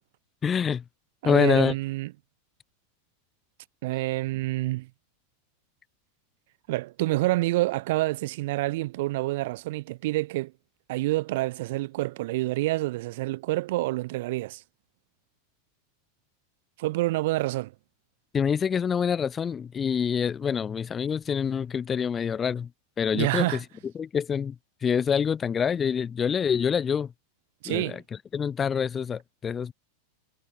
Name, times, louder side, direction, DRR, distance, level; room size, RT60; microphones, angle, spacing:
voice 1, 0.4-0.8 1.2-1.7 18.3-22.7 23.0-23.6 23.9-24.5 24.8-27.1 27.6-28.0 28.3-29.7, left 7 dB, 20° left, 3.2 m, -26 dB
voice 2, 1.2-2.1 3.8-4.9 6.7-10.5 10.9-14.6 16.8-17.7 23.1-23.6 27.6-28.0, right 19 dB, 65° right, 6.6 m, -27 dB
hypercardioid pair, 125°, 0 cm